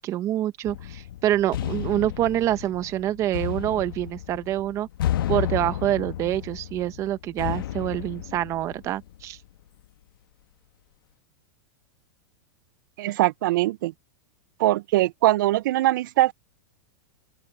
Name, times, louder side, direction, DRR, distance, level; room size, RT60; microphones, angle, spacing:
voice 1, 0.0-4.9 5.3-9.4, right 13 dB, 25° right, 0.9 m, -26 dB
sound 1, 0.6-9.3, left 12 dB, 80° left, 1.1 m, -32 dB
voice 2, 13.0-13.9 14.6-16.3, right 16 dB, 65° right, 0.4 m, -22 dB
open air
supercardioid pair, 160°, 11 cm